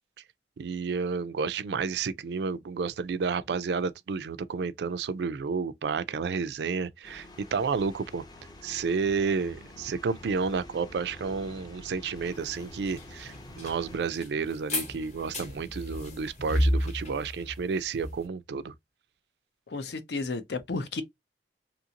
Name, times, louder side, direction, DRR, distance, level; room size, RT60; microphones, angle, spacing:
voice 1, 0.6-8.3 8.6-18.7, right 5 dB, 70° right, 0.3 m, -31 dB
sound 1, 7.0-14.0, left 1 dB, 25° left, 0.5 m, -48 dB
sound 2, 12.2-18.2, equal, 40° left, 0.9 m, -32 dB
voice 2, 19.7-21.0, left 3 dB, 70° left, 0.6 m, -33 dB
2.8 x 2.5 x 2.8 m
head